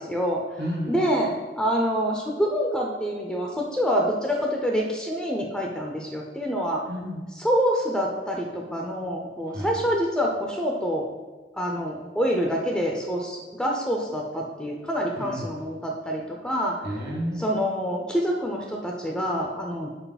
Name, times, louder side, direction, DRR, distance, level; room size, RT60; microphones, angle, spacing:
voice 1, 0.0-0.4 0.9-6.8 7.4-11.1 11.6-16.7 17.4-19.9, equal, 5° left, -1 dB, 0.6 m, -26 dB
voice 2, 0.6-1.0 6.9-7.2 9.5-9.7 15.2-15.5 16.8-17.4, equal, 60° right, -2 dB, 2.0 m, -31 dB
5.7 x 5.1 x 4.1 m, 1.2 s
head